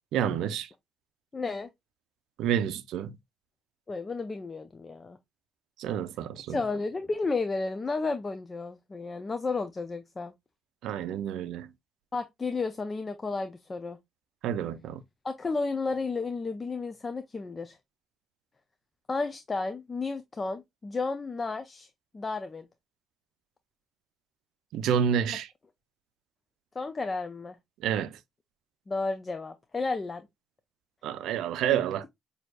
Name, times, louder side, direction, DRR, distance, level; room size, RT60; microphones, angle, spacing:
voice 1, 0.1-0.7 2.4-3.2 5.8-6.6 10.8-11.7 14.4-15.0 24.7-25.5 27.8-28.2 31.0-32.1, right 9 dB, 85° right, 0.4 m, -29 dB
voice 2, 1.3-1.7 3.9-5.2 6.5-10.3 12.1-14.0 15.2-17.8 19.1-21.9 22.1-22.7 26.8-27.6 28.9-30.3 31.6-32.1, left 3 dB, 30° left, 0.5 m, -32 dB
6.1 x 2.8 x 2.2 m
cardioid pair, 90°, 0 cm